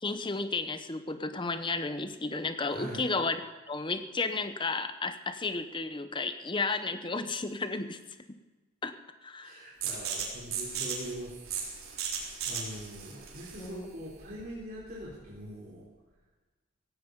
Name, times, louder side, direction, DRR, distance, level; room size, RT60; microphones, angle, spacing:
voice 1, 0.0-3.4 3.7-8.0 8.8-8.9 9.2-9.6 13.6-13.9, left 3 dB, 25° left, 10 dB, 0.8 m, -33 dB
voice 2, 2.7-3.1 9.4-11.5 11.9-15.8, right 1 dB, 40° right, -7 dB, 3.5 m, -43 dB
sound 1, 9.8-15.3, right 6 dB, 80° right, 3.9 m, -37 dB
16.0 x 16.0 x 5.3 m, 1.2 s
head